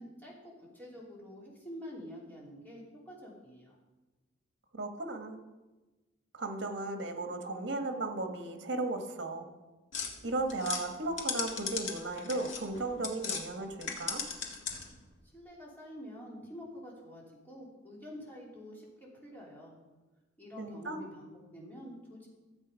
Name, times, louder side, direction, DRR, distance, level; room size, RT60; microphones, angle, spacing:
voice 1, 0.0-3.8 15.2-19.8 20.4-22.3, equal, 10° left, -5 dB, 3.0 m, -48 dB
voice 2, 4.7-5.4 6.3-9.5 10.2-14.3 20.6-21.0, right 2 dB, 65° right, 5 dB, 1.3 m, -35 dB
sound 1, 9.9-13.4 13.8-15.0, left 5 dB, 80° left, 1.9 m, -37 dB
13.0 x 8.1 x 5.0 m, 1.2 s
head